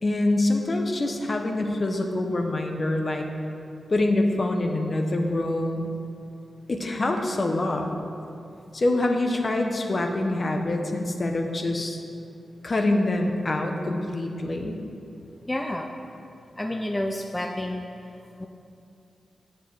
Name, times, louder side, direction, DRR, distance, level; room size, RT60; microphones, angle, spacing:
voice 1, 0.0-3.3 3.9-5.9 6.7-7.9 8.7-12.0 12.6-14.8, left 2 dB, 50° left, 3 dB, 0.9 m, -25 dB
voice 2, 15.5-15.9 16.6-17.8 18.4-18.5, left 1 dB, 20° left, 2 dB, 0.6 m, -29 dB
7.5 x 5.3 x 6.1 m, 2.6 s
cardioid pair, 45°, 0 cm